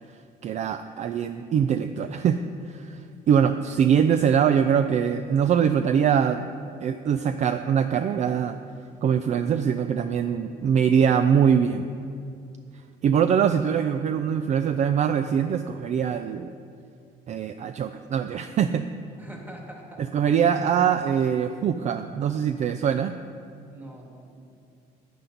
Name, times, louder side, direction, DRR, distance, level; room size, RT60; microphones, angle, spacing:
voice 1, 0.4-2.4 2.7-6.4 6.8-8.6 9.0-11.9 13.0-16.5 17.3-18.8 20.1-23.1, right 8 dB, 45° right, 9 dB, 0.4 m, -23 dB
voice 2, 19.2-20.5 23.7-24.4, right 1 dB, 10° right, 0 dB, 1.8 m, -44 dB
10.0 x 9.2 x 3.9 m, 2.4 s
cardioid pair, 110°, 17 cm